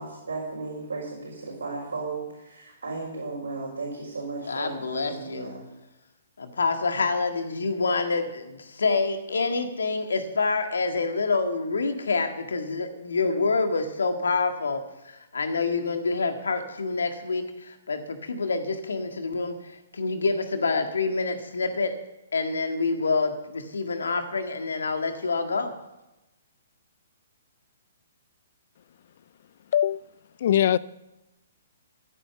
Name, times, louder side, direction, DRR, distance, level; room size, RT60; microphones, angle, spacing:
voice 1, 0.0-5.6, right 3 dB, 75° right, -5 dB, 5.1 m, -35 dB
voice 2, 4.4-5.5 6.4-21.9 22.3-25.7, left 4 dB, 70° left, 7 dB, 1.8 m, -27 dB
voice 3, 29.7-30.1 30.4-30.8, left 10 dB, 50° left, 20 dB, 0.5 m, -21 dB
13.5 x 9.9 x 6.9 m, 0.97 s
figure-of-eight pair, 125°, 0 cm